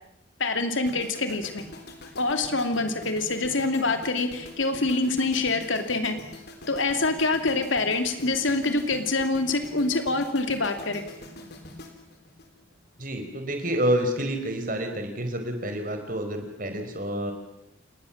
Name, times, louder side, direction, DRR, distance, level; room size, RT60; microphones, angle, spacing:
voice 1, 0.4-1.6 2.2-6.2 6.7-11.0, left 3 dB, 75° left, 7 dB, 2.8 m, -25 dB
sound 1, 0.9-13.0 13.3-13.6, left 2 dB, 55° left, 3.7 m, -44 dB
voice 2, 13.0-17.3, right 1 dB, 45° right, 5 dB, 4.9 m, -28 dB
29.5 x 19.5 x 7.3 m, 0.86 s
head